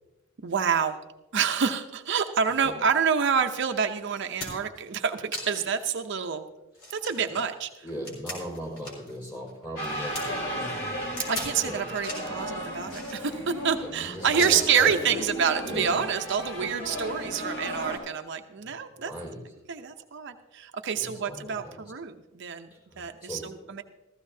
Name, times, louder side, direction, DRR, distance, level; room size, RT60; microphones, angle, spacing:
voice 1, 0.4-1.0 1.3-6.4 6.9-7.7 10.3-10.4 11.2-19.1 19.7-22.7 23.0-23.8, right 6 dB, 60° right, 6 dB, 0.6 m, -27 dB
sound 1, 3.6-3.7 4.1-4.8 5.3-5.8 6.2-6.3 6.7-9.2 9.5-10.2 11.2-11.6 11.9-12.4 12.9-13.6 14.4-14.9 16.0-16.1, left 1 dB, 65° left, 3.9 m, -39 dB
voice 2, 7.8-11.1 11.6-11.9 13.8-15.1 15.6-16.0 16.5-16.7 18.6-18.7 19.0-19.4 20.9-21.9 22.9-23.7, equal, 25° left, -2 dB, 4.5 m, -38 dB
sound 2, 9.8-18.0, equal, 80° left, 3.6 m, -35 dB
15.0 x 14.5 x 2.7 m, 0.99 s
head